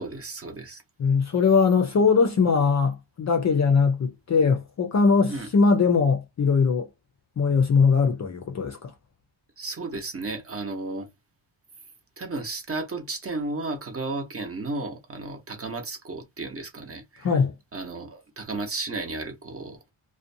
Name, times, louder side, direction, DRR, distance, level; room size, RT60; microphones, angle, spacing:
voice 1, 0.0-0.8 5.3-5.5 9.6-11.1 12.2-17.3 17.7-19.8, right 3 dB, 30° right, 0.8 m, -33 dB
voice 2, 1.0-6.9 7.4-8.9 17.2-17.5, left 5 dB, 35° left, 0.5 m, -21 dB
2.5 x 2.2 x 2.6 m
cardioid pair, 115°, 49 cm